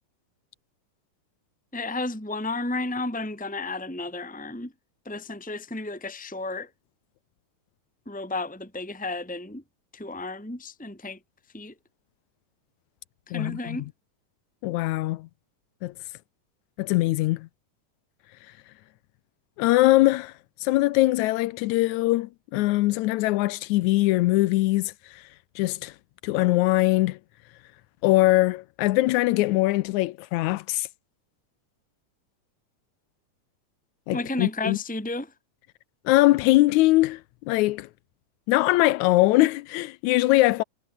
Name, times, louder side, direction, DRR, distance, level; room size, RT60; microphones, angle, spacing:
voice 1, 1.7-4.7 5.0-6.7 8.1-9.6 9.9-11.2 11.5-11.7 13.3-13.9 34.1-35.3, left 2 dB, 5° left, 3.0 m, -32 dB
voice 2, 13.3-13.8 14.6-15.3 15.8-15.9 16.8-17.5 19.6-20.3 20.6-25.2 25.6-25.9 26.2-27.2 28.0-30.9 34.1-34.8 36.1-37.9 38.5-40.6, left 18 dB, 80° left, 1.9 m, -22 dB
omnidirectional pair, 3.5 m